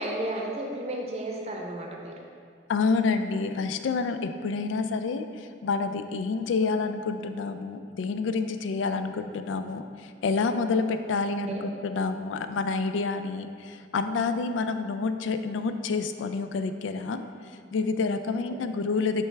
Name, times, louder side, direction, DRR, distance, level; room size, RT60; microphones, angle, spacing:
voice 1, 0.0-2.2 11.5-11.6 18.4-18.6, right 1 dB, 35° right, 0 dB, 0.6 m, -33 dB
voice 2, 2.7-17.2 17.7-19.3, left 4 dB, 80° left, 9 dB, 0.3 m, -28 dB
8.9 x 3.4 x 3.2 m, 2.2 s
head